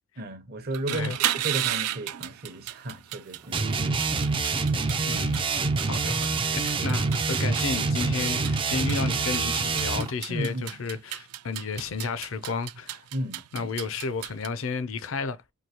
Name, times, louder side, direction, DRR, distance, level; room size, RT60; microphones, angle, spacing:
voice 1, 0.2-4.3 4.7-4.8 5.1-5.2 10.3-10.7 13.1-13.7, right 1 dB, 45° right, 0.7 m, -35 dB
sound 1, 0.6-14.5, right 13 dB, 90° right, 0.4 m, -34 dB
sound 2, 3.5-10.1, right 4 dB, 25° right, 0.4 m, -26 dB
voice 2, 5.0-5.4 5.9-13.0 13.5-15.4, left 4 dB, 60° left, 0.5 m, -32 dB
4.6 x 2.7 x 2.9 m
head